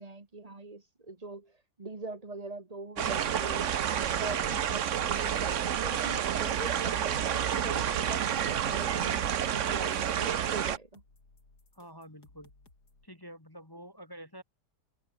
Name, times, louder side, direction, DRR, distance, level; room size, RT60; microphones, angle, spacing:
voice 1, 0.0-3.9 4.2-11.0, right 3 dB, 20° right, 1.8 m, -42 dB
sound 1, 3.0-10.8, right 9 dB, 50° right, 1.1 m, -29 dB
sound 2, 3.3-13.1, left 3 dB, 65° left, 5.7 m, -61 dB
voice 2, 4.3-4.6 11.7-12.5 13.0-14.4, equal, 10° left, 2.4 m, -48 dB
omnidirectional pair, 1.9 m